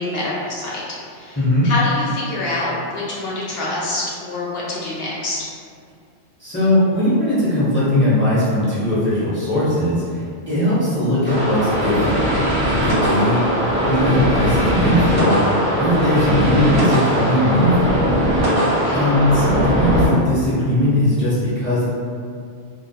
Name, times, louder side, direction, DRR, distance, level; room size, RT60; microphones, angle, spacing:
voice 1, 0.0-1.4 1.6-5.5 18.6-19.1, left 2 dB, 65° left, -6 dB, 0.7 m, -26 dB
voice 2, 1.4-1.7 6.4-12.2 12.6-13.4 13.9-15.4 15.7-18.0 18.9-21.9, left 1 dB, 15° left, -12 dB, 0.5 m, -19 dB
sound 1, 11.3-20.1, equal, 45° right, 0.5 m, -19 dB
2.2 x 2.0 x 2.7 m, 2.2 s
omnidirectional pair, 1.2 m